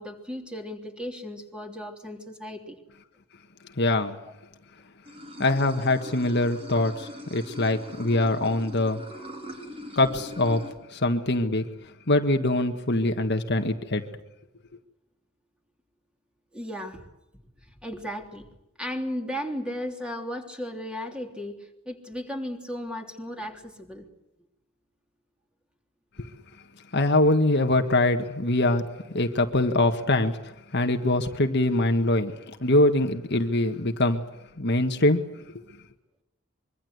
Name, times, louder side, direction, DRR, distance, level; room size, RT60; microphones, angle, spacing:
voice 1, 0.0-2.8 16.5-17.1 17.8-18.5 18.8-24.0, equal, 5° right, 3.3 m, -35 dB
voice 2, 3.8-4.2 5.4-9.0 10.0-10.6 10.9-11.7 12.1-14.0 26.9-28.9 29.1-32.3 32.6-34.2 34.6-35.2, left 2 dB, 50° left, 1.6 m, -23 dB
Water / Sink (filling or washing), 5.0-10.7, left 1 dB, 25° right, 4.0 m, -42 dB
25.0 x 23.5 x 8.0 m
head